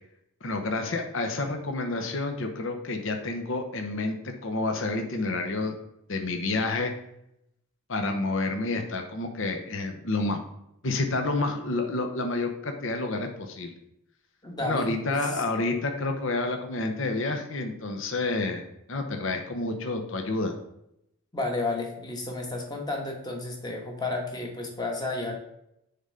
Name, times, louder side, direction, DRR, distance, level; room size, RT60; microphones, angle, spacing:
voice 1, 0.4-5.7 6.1-6.9 7.9-10.4 10.8-13.7 14.6-18.6 18.9-20.6, left 2 dB, 60° left, 5 dB, 0.8 m, -29 dB
voice 2, 14.4-15.4 21.3-25.3, left 2 dB, 20° left, 1 dB, 1.3 m, -32 dB
6.8 x 3.8 x 5.6 m, 0.79 s
head